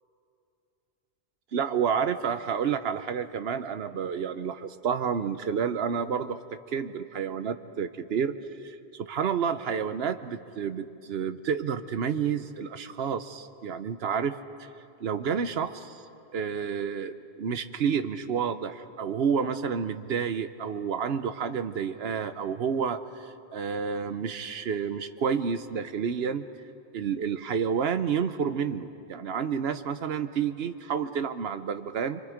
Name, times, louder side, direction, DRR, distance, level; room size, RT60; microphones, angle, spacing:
voice 1, 1.5-6.4 6.7-8.4 8.6-14.4 15.0-16.0 16.3-26.4 26.9-32.2, right 7 dB, 65° right, 11 dB, 1.0 m, -30 dB
25.5 x 24.5 x 5.1 m, 2.6 s
omnidirectional pair, 1.1 m